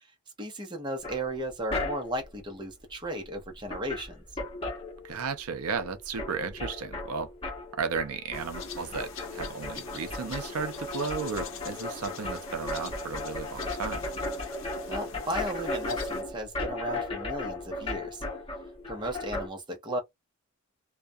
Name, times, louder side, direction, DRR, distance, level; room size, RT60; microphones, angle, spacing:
voice 1, 0.4-4.2 14.9-18.2 18.9-20.0, right 1 dB, 20° right, 0.7 m, -35 dB
sound 1, 1.0-2.3 3.3-3.4 3.6-5.5 5.7-19.5, left 2 dB, 25° left, 0.9 m, -36 dB
voice 2, 5.0-7.3 7.7-14.1, right 5 dB, 85° right, 0.5 m, -34 dB
sound 2, 8.3-16.2, left 6 dB, 60° left, 0.7 m, -45 dB
2.3 x 2.2 x 2.6 m
head